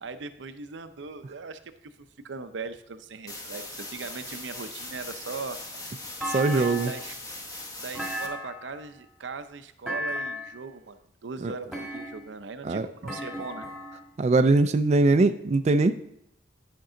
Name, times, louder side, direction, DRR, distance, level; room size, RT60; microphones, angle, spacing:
voice 1, 0.0-5.6 6.3-7.1 7.8-13.7, right 4 dB, 90° right, 9 dB, 0.6 m, -39 dB
sound 1, 3.3-8.3, left 2 dB, 20° left, 1.0 m, -40 dB
Thump thud, 6.2-7.1 7.9-8.9 9.9-10.6 11.7-12.4 13.1-14.1, equal, 5° left, 1.7 m, -35 dB
voice 2, 6.3-6.9 11.4-11.5 12.6-12.9 14.2-15.9, right 3 dB, 40° right, 8 dB, 0.3 m, -21 dB
10.5 x 5.3 x 3.8 m, 0.78 s
head